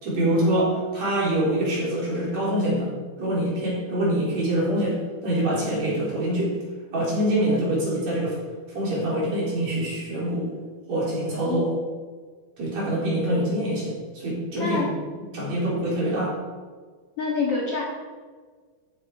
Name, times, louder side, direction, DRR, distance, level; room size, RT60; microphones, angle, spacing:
voice 1, 0.0-2.9 3.2-5.0 5.2-6.5 6.9-8.4 8.7-10.5 10.9-11.7 12.6-14.8 15.3-16.3, right 1 dB, 45° right, -6 dB, 5.0 m, -25 dB
voice 2, 11.3-11.7 14.6-14.9 17.2-17.8, left 4 dB, 45° left, -4 dB, 2.2 m, -27 dB
15.5 x 8.4 x 5.0 m, 1.5 s
omnidirectional pair, 4.4 m